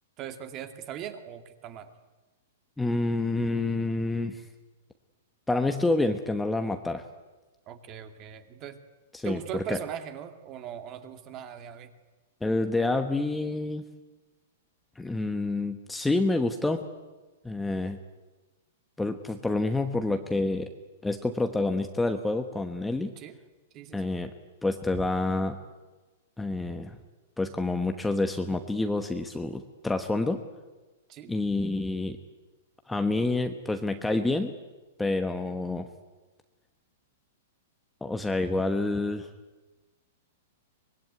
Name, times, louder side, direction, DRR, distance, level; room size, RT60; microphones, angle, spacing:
voice 1, 0.2-1.9 7.7-8.8 9.2-11.9 23.2-23.4 23.7-24.1 31.1-31.3, right 10 dB, 30° right, 8 dB, 2.3 m, -40 dB
voice 2, 2.8-4.4 5.5-7.0 9.1-9.4 9.7-9.8 12.4-13.8 15.0-16.8 17.4-18.0 19.0-20.7 21.0-23.1 23.9-24.3 24.6-25.6 26.4-27.0 27.4-30.4 31.3-32.2 32.9-34.5 35.0-35.9 38.0-39.3, left 2 dB, 5° left, 6 dB, 1.1 m, -28 dB
24.5 x 20.0 x 9.6 m, 1.2 s
hypercardioid pair, 150°, 0 cm